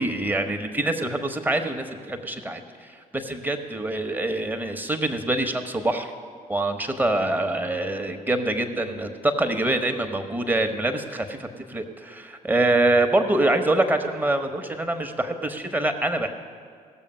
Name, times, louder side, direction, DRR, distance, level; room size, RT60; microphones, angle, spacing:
voice 1, 0.0-6.1 6.5-16.3, right 2 dB, 10° right, 5 dB, 1.1 m, -25 dB
17.0 x 7.1 x 5.5 m, 2.1 s
figure-of-eight pair, 50°, 21 cm